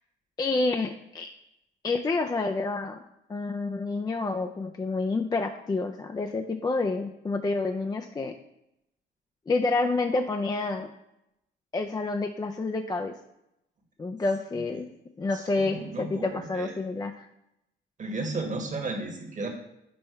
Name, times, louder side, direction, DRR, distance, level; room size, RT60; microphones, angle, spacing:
voice 1, 0.4-1.3 1.8-3.0 3.3-8.3 9.5-10.9 11.7-13.1 14.0-14.9 15.2-17.3, left 3 dB, 20° left, 5 dB, 0.4 m, -28 dB
voice 2, 15.3-16.8 18.0-19.5, right 3 dB, 40° right, 3 dB, 1.3 m, -34 dB
5.3 x 4.3 x 4.5 m, 0.85 s
cardioid pair, 90°, 20 cm